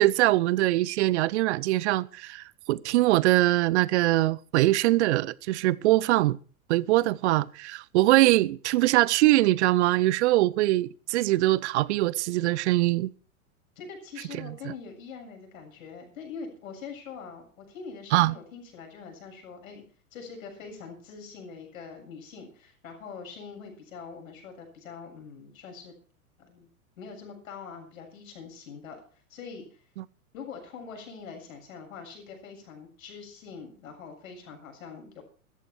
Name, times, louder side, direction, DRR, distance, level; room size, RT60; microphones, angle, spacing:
voice 1, 0.0-6.4 6.7-13.1 14.3-14.5 18.1-18.3 30.0-30.1, right 17 dB, 50° right, 0.7 m, -23 dB
voice 2, 13.8-19.8 20.1-25.9 26.4-26.7 27.0-29.0 29.3-29.8 30.3-35.2, left 5 dB, 65° left, 7.2 m, -43 dB
14.0 x 14.0 x 4.6 m
figure-of-eight pair, 100°, 44 cm